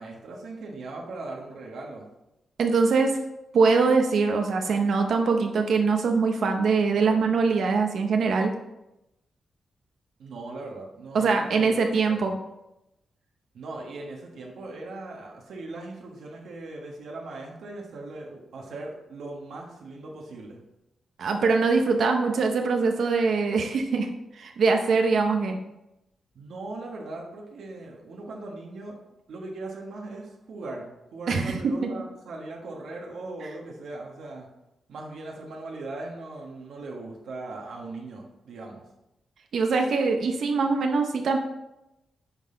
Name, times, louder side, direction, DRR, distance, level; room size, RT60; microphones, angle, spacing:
voice 1, 0.0-2.1 10.2-12.3 13.5-20.6 26.3-29.0 29.3-34.5 34.9-38.8, right 2 dB, 85° right, -1 dB, 1.4 m, -39 dB
voice 2, 2.6-3.2 3.5-8.5 11.1-12.3 21.2-24.1 24.4-25.6 31.3-31.7 39.5-41.4, right 4 dB, 65° right, 4 dB, 0.7 m, -23 dB
9.7 x 4.1 x 3.8 m, 0.91 s
wide cardioid pair, 145°, 0 cm